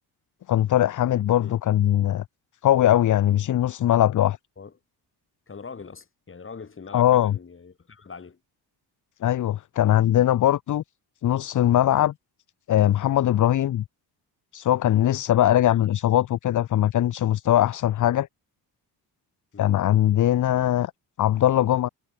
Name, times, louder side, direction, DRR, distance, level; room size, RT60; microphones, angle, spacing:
voice 1, 0.5-2.2 2.6-4.4 6.9-7.3 9.2-10.8 11.2-12.1 12.7-13.8 14.5-18.3 19.6-20.9 21.2-21.9, left 12 dB, 50° left, 0.7 m, -21 dB
voice 2, 5.5-8.4 19.5-19.7, left 5 dB, 30° left, 5.5 m, -42 dB
cardioid pair, 130°, 40 cm